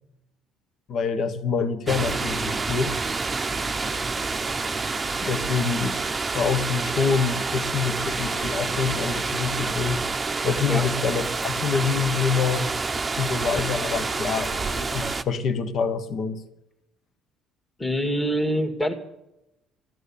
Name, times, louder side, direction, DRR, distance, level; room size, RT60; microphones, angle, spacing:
voice 1, 0.9-2.9 5.2-6.0 6.3-10.0 10.4-12.7 13.2-16.4, left 5 dB, 50° left, 1.4 m, -26 dB
sound 1, 1.9-15.2, right 4 dB, 20° right, 0.8 m, -28 dB
voice 2, 17.8-18.9, equal, 10° left, 2.1 m, -24 dB
15.0 x 11.0 x 8.5 m
cardioid pair, 125°, 0 cm